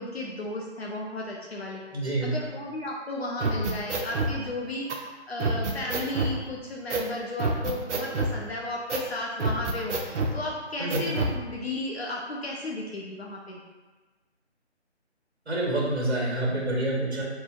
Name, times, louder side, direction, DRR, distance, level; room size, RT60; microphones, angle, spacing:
voice 1, 0.0-1.8 2.2-13.6, left 1 dB, 65° left, -2 dB, 0.5 m, -34 dB
voice 2, 1.9-2.3 10.8-11.0 15.5-17.2, right 1 dB, 65° right, -4 dB, 1.2 m, -27 dB
sound 1, 3.4-4.3 4.9-5.0 5.4-6.3 6.9-7.1 7.4-8.4 8.9-9.1 9.4-10.3 10.9-11.4, right 2 dB, 80° right, 0.5 m, -27 dB
2.7 x 2.6 x 2.4 m, 1.3 s
figure-of-eight pair, 160°, 35 cm